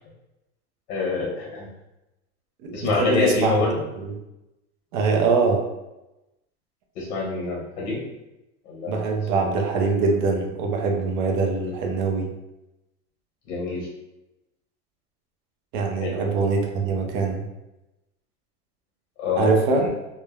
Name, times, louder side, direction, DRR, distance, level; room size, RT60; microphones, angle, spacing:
voice 1, 0.9-1.7 2.7-3.7 6.9-8.0 8.7-9.0 9.3-9.4 13.5-13.9 16.0-16.2 19.2-19.5 19.8-19.9, left 4 dB, 80° left, -4 dB, 0.9 m, -26 dB
voice 2, 2.6-3.5 4.0-4.1 4.9-5.6 8.9-12.3 15.7-17.4 19.3-19.9, right 4 dB, 45° right, 2 dB, 0.4 m, -23 dB
3.1 x 2.0 x 2.2 m, 0.97 s
supercardioid pair, 170°, 35 cm